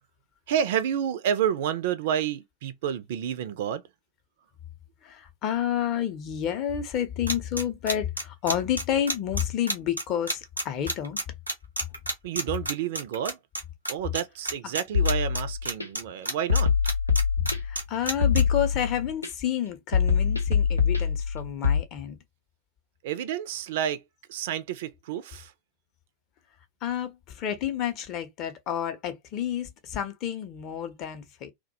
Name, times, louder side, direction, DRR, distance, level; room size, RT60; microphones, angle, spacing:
voice 1, 0.5-3.8 12.2-13.4 13.9-16.7 23.0-24.0 24.3-25.5, right 9 dB, 55° right, 0.3 m, -29 dB
voice 2, 5.0-11.2 17.6-22.2 26.8-31.5, left 10 dB, 40° left, 0.5 m, -30 dB
sound 1, 7.3-13.6 13.9-14.2 14.5-16.0 16.3-18.4, right 1 dB, 90° right, 0.8 m, -29 dB
sound 2, 14.9-15.9 16.5-17.8 18.2-19.3 19.9-21.8, left 6 dB, 85° left, 0.5 m, -24 dB
2.2 x 2.1 x 2.7 m
figure-of-eight pair, 90°, 0 cm